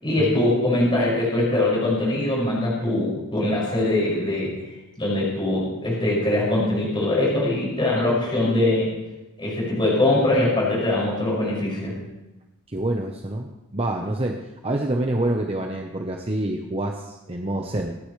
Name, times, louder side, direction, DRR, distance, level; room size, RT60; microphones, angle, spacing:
voice 1, 0.0-4.5 5.0-8.9 9.4-11.9, left 1 dB, 25° left, -5 dB, 6.0 m, -22 dB
voice 2, 12.7-18.0, right 1 dB, 25° right, 2 dB, 1.0 m, -27 dB
27.0 x 10.0 x 3.3 m, 1.0 s
head